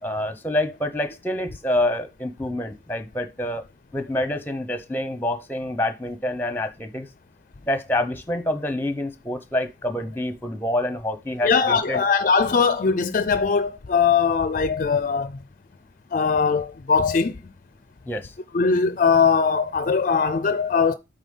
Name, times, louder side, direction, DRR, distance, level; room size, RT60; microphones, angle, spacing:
voice 1, 0.0-3.6 3.9-7.1 7.6-12.0 18.1-18.3, left 1 dB, 10° left, 0.8 m, -27 dB
voice 2, 11.4-15.4 16.1-17.4 18.5-20.9, left 5 dB, 45° left, 0.4 m, -20 dB
8.4 x 3.9 x 5.4 m
head